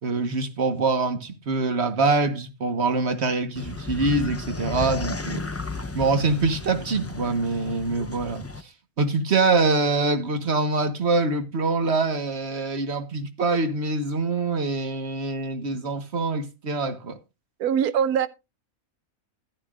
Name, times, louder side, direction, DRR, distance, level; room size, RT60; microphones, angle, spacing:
voice 1, 0.0-5.4 5.8-8.7 9.0-17.2, right 3 dB, 50° right, 1.5 m, -24 dB
sound 1, 3.6-8.6, left 3 dB, 20° left, 0.3 m, -33 dB
voice 2, 17.6-18.3, right 8 dB, 85° right, 1.3 m, -22 dB
14.0 x 11.0 x 2.4 m
omnidirectional pair, 1.6 m